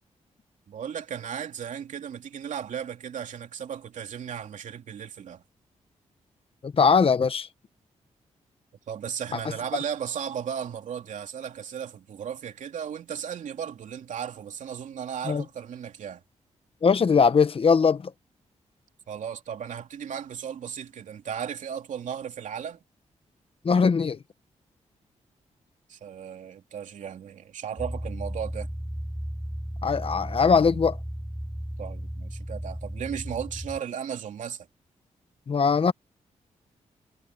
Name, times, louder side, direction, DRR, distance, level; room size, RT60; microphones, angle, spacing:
voice 1, 0.7-5.4 8.9-16.2 19.1-22.8 25.9-28.7 31.8-34.7, right 8 dB, 75° right, 3.0 m, -35 dB
voice 2, 6.6-7.5 15.2-15.4 16.8-18.1 23.6-24.2 29.8-31.0 35.5-35.9, left 5 dB, 45° left, 1.2 m, -21 dB
sound 1, 27.8-33.8, equal, 5° right, 5.2 m, -35 dB
cardioid pair, 75°, 13 cm